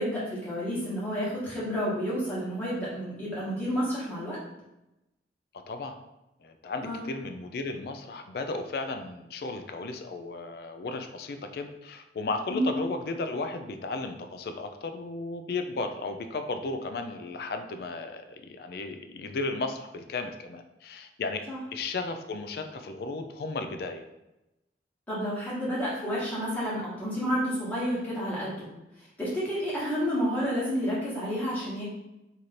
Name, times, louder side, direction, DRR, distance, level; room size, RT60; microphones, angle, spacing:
voice 1, 0.0-4.4 6.8-7.0 12.5-12.7 21.5-21.6 25.1-28.7 29.0-31.8, equal, 10° left, -9 dB, 1.2 m, -30 dB
voice 2, 6.4-21.4 21.7-24.0, left 3 dB, 55° left, 7 dB, 0.3 m, -34 dB
3.1 x 2.6 x 4.1 m, 0.94 s
head